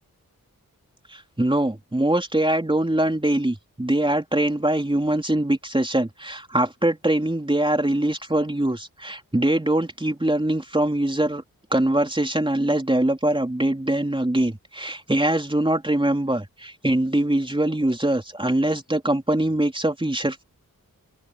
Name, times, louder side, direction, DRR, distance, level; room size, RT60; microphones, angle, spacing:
voice 1, 1.1-11.4 11.7-20.4, right 1 dB, 15° right, 3.5 m, -23 dB
open air
cardioid pair, 55°, 34 cm